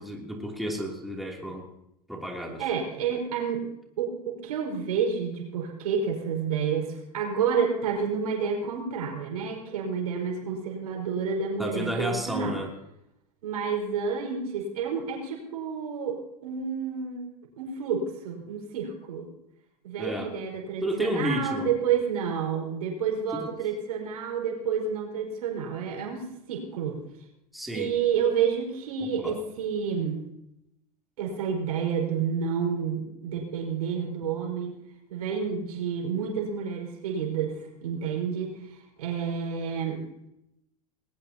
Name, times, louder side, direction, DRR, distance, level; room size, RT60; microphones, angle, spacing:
voice 1, 0.0-1.6 2.1-2.7 11.6-12.7 20.0-20.3 20.8-21.7 23.3-23.5 27.5-27.9 29.0-29.4, equal, ahead, -1 dB, 3.1 m, -32 dB
voice 2, 2.6-3.6 4.0-12.5 13.4-17.3 17.6-19.3 19.8-27.0 27.7-30.3 31.2-34.8 35.1-40.0, right 6 dB, 80° right, -1 dB, 5.0 m, -29 dB
20.5 x 18.5 x 2.9 m, 0.83 s
hypercardioid pair, 100°, 19 cm